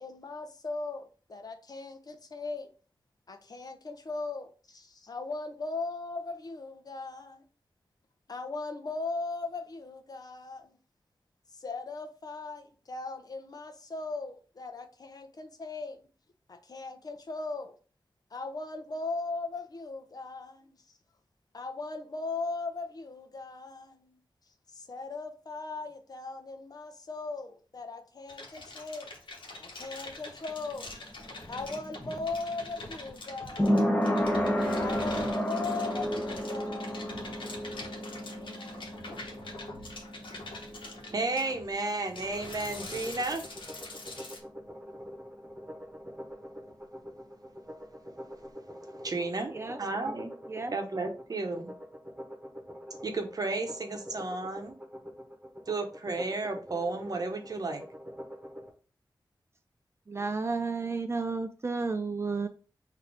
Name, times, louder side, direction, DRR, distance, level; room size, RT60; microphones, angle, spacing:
voice 1, 0.0-2.7 3.3-7.4 8.3-10.8 11.6-16.0 16.5-17.8 18.3-20.8 21.5-24.2 24.7-29.1 29.6-31.0 31.5-33.9 34.8-37.2 38.4-38.8, left 3 dB, 50° left, 0.7 m, -38 dB
sound 1, 28.3-44.4, left 2 dB, 85° left, 1.1 m, -44 dB
sound 2, 30.5-42.0 42.3-42.4, equal, 15° left, 0.9 m, -32 dB
voice 2, 41.0-43.4 48.8-50.3 50.7-51.7 53.0-54.7 55.7-57.8, right 3 dB, 50° right, 0.9 m, -33 dB
sound 3, 42.7-58.7, equal, 15° right, 1.3 m, -45 dB
voice 3, 49.5-50.2 50.5-50.8 60.1-62.5, right 4 dB, 35° right, 0.4 m, -32 dB
3.9 x 2.7 x 4.9 m
wide cardioid pair, 110°, 8 cm